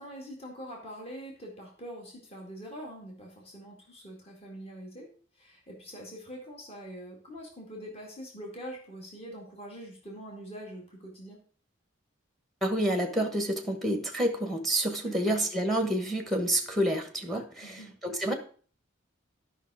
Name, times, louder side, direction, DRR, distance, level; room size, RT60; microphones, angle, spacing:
voice 1, 0.0-5.1 5.3-11.4 15.0-15.4 17.6-17.9, equal, 30° left, -1 dB, 2.1 m, -44 dB
voice 2, 12.6-18.3, right 1 dB, ahead, 5 dB, 1.1 m, -28 dB
11.0 x 5.9 x 4.8 m, 0.43 s
head